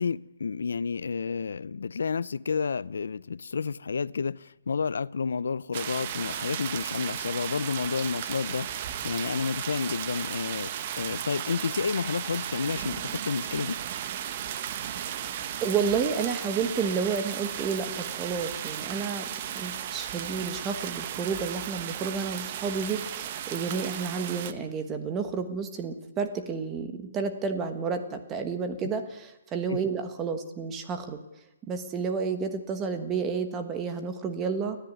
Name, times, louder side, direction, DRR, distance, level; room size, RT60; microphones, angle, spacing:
voice 1, 0.0-13.8 28.8-28.9 29.7-29.8, left 5 dB, 80° left, 0.6 m, -30 dB
sound 1, 5.7-24.5, right 10 dB, 30° right, 1.0 m, -35 dB
voice 2, 15.6-19.3 19.5-31.2 31.7-34.8, right 5 dB, 15° right, 1.3 m, -31 dB
30.0 x 10.5 x 9.5 m
hypercardioid pair, 170°, 0 cm